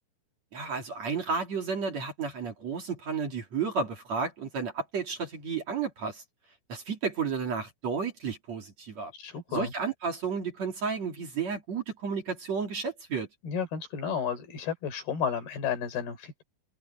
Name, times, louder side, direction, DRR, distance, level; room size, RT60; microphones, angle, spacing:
voice 1, 0.5-6.2 6.7-9.1 9.5-13.3, right 5 dB, 45° right, 3.5 m, -32 dB
voice 2, 9.2-9.7 13.4-16.4, left 7 dB, 65° left, 5.8 m, -32 dB
omnidirectional pair, 4.8 m